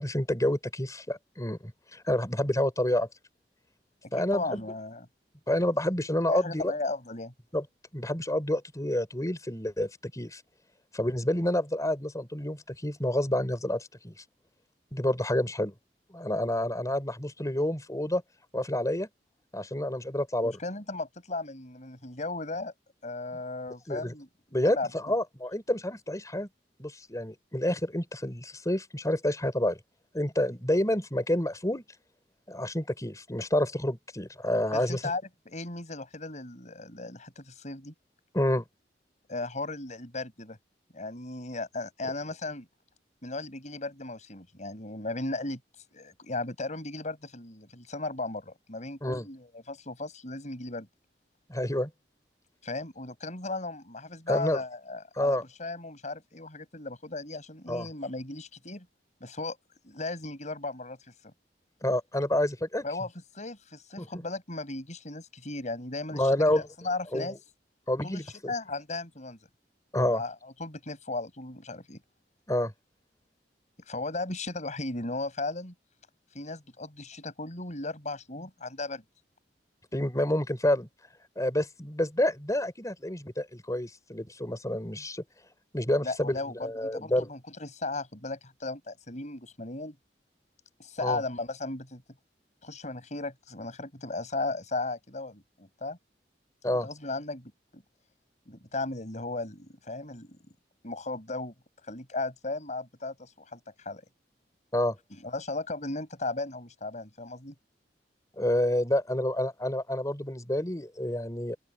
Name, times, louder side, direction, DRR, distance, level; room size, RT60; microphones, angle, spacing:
voice 1, 0.0-3.1 4.1-4.6 5.5-6.7 7.5-7.6 7.9-10.4 10.9-14.1 14.9-15.7 16.1-18.2 18.5-19.1 19.5-20.6 23.9-24.1 24.5-26.5 26.8-29.8 30.1-31.8 32.5-35.0 38.3-38.6 49.0-49.3 51.5-51.9 54.3-54.6 55.2-55.4 57.7-57.9 61.8-62.8 64.0-64.2 66.1-66.6 67.1-67.4 67.9-68.5 69.9-70.2 72.5-72.7 79.9-80.9 81.4-85.2 85.7-87.3 91.0-91.2 96.6-96.9 104.7-105.0 108.4-111.6, left 1 dB, 20° left, 4.6 m, -28 dB
voice 2, 4.0-5.1 6.3-7.3 20.4-22.7 23.0-24.3 24.6-24.9 34.7-37.9 39.3-40.6 40.9-42.7 43.2-45.6 45.9-50.9 52.6-58.9 59.2-59.6 59.8-61.0 62.8-67.3 68.0-69.4 70.1-70.3 70.6-72.0 73.9-75.7 76.3-79.0 86.0-90.0 90.8-92.0 92.6-96.0 96.7-97.8 98.5-100.4 100.8-101.5 101.9-104.0 105.1-107.5, left 2 dB, 45° left, 6.4 m, -36 dB
open air
head